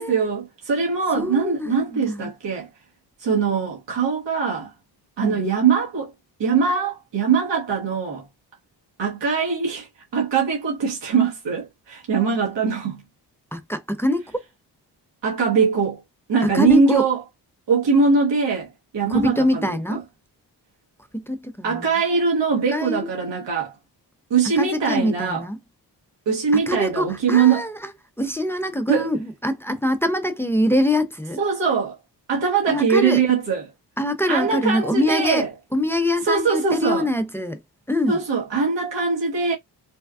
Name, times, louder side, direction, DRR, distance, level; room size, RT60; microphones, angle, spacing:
voice 1, 0.0-2.7 3.2-4.7 5.2-6.1 6.4-8.3 9.0-13.0 15.2-16.0 16.3-17.2 17.7-18.7 18.9-20.0 21.6-23.7 24.3-25.4 26.3-27.6 28.9-29.1 31.4-32.0 32.3-33.7 34.3-35.5 36.2-37.1 38.1-39.5, right 5 dB, 80° right, 1.2 m, -22 dB
voice 2, 1.1-2.3 5.2-5.5 13.5-14.4 16.4-17.0 19.1-20.0 21.1-21.9 22.7-23.1 24.6-25.6 26.7-27.9 28.2-31.4 32.7-33.2 34.0-35.5 35.7-37.6 37.9-38.2, left 1 dB, 5° left, 0.4 m, -24 dB
3.4 x 2.2 x 2.3 m
cardioid pair, 80°, 42 cm